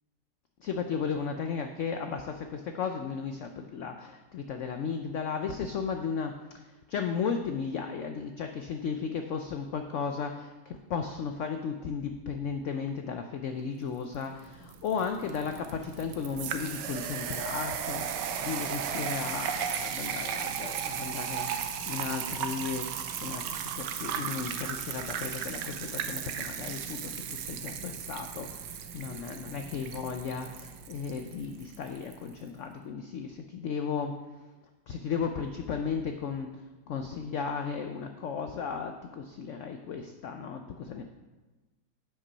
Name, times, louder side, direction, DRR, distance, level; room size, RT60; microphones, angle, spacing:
voice 1, 0.6-6.3 6.9-34.1 34.9-36.5 36.9-41.1, left 6 dB, 80° left, 6 dB, 0.6 m, -35 dB
sound 1, 14.2-32.2, right 8 dB, 80° right, 1.3 m, -36 dB
8.0 x 5.9 x 5.5 m, 1.2 s
omnidirectional pair, 1.9 m